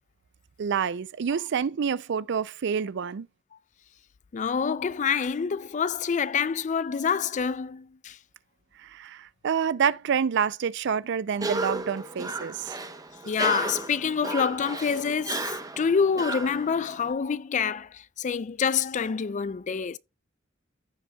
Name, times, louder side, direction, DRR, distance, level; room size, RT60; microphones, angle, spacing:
voice 1, 0.6-3.3 8.8-12.8, right 7 dB, 60° right, 0.4 m, -28 dB
voice 2, 4.3-8.2 13.3-20.0, left 6 dB, 40° left, 0.4 m, -27 dB
Cough, 11.3-17.1, right 2 dB, 20° right, 0.8 m, -34 dB
15.5 x 5.2 x 2.3 m
head